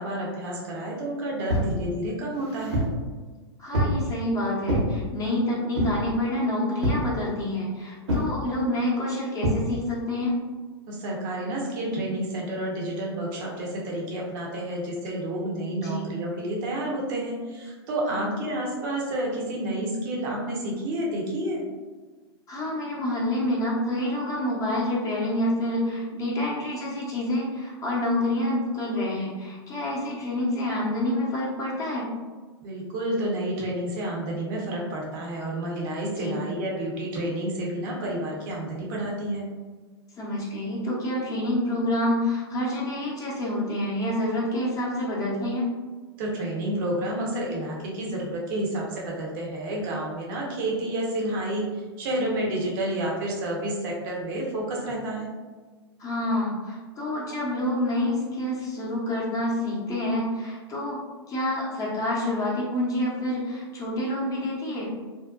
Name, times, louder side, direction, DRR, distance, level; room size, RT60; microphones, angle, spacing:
voice 1, 0.0-2.8 10.9-21.6 32.6-39.5 46.2-55.3, right 1 dB, 50° right, -2 dB, 0.8 m, -30 dB
sound 1, 1.5-1.8 2.3-3.0 3.7-4.0 4.7-4.9 5.8-6.1 6.8-7.1 8.1-8.3 9.4-9.6, equal, 80° right, 0.9 m, -25 dB
voice 2, 3.6-10.4 15.7-16.0 18.1-18.3 22.5-32.1 36.1-36.4 40.2-45.7 56.0-61.0 61.3-64.9, left 1 dB, 25° left, -4 dB, 0.7 m, -28 dB
2.6 x 2.0 x 2.4 m, 1.4 s
hypercardioid pair, 105°, 14 cm